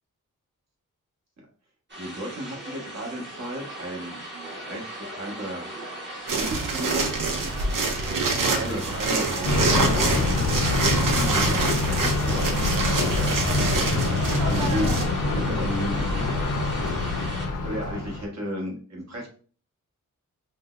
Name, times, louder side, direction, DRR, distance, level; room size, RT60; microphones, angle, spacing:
sound 1, 1.9-17.5, right 1 dB, 35° right, 1.3 m, -37 dB
voice 1, 2.0-4.2 4.5-5.6 6.3-7.8 8.4-10.5 11.0-12.4 13.1-14.2 14.4-15.0 15.3-16.4 17.6-19.3, equal, 55° right, -1 dB, 1.6 m, -34 dB
sound 2, 6.3-15.1, right 3 dB, 75° right, 0.7 m, -26 dB
Thunder, 9.4-18.2, left 3 dB, 70° left, 0.8 m, -25 dB
5.3 x 2.2 x 2.5 m, 0.41 s
cardioid pair, 75°, 32 cm